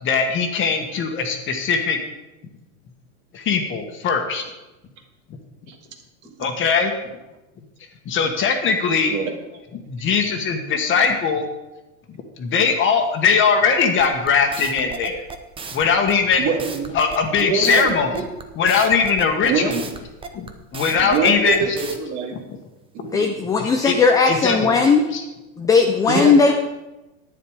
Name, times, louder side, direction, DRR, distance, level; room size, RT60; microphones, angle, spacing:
voice 1, 0.0-2.0 3.3-4.4 6.4-6.9 8.0-9.1 9.9-11.5 12.4-15.2 15.7-16.5 16.9-18.1 18.6-19.7 20.3-20.5 20.7-21.8 23.6-23.9 24.2-24.7 25.1-25.2, left 5 dB, 30° left, 5 dB, 1.4 m, -20 dB
sound 1, 14.0-22.0, right 5 dB, 15° right, 0.7 m, -34 dB
voice 2, 16.4-17.0 17.3-18.2 19.4-19.8 21.0-22.4 22.9-23.3 26.1-26.5, right 4 dB, 45° right, 3 dB, 2.0 m, -25 dB
voice 3, 23.1-25.0 25.6-26.5, left 5 dB, 10° left, 3 dB, 0.3 m, -17 dB
10.5 x 9.5 x 4.9 m, 1.0 s
supercardioid pair, 140°, 41 cm